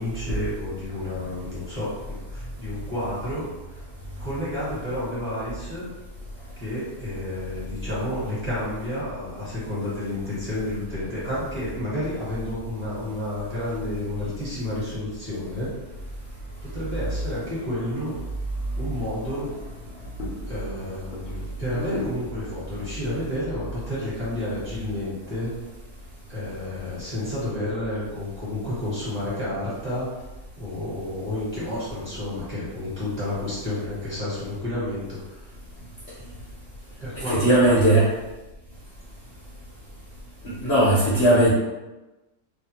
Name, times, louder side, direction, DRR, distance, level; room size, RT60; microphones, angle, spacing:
voice 1, 0.0-3.8 4.2-5.9 6.6-15.7 16.6-18.2 18.8-19.6 20.4-25.5 26.3-30.1 30.6-35.5 36.2-36.3 37.0-38.1, left 1 dB, 30° right, -9 dB, 1.2 m, -30 dB
sound 1, 19.2-31.3, left 2 dB, 85° left, 1.1 m, -43 dB
voice 2, 37.3-38.1 40.6-41.5, right 1 dB, 60° left, -7 dB, 0.8 m, -18 dB
2.6 x 2.3 x 2.8 m, 1.1 s
omnidirectional pair, 1.6 m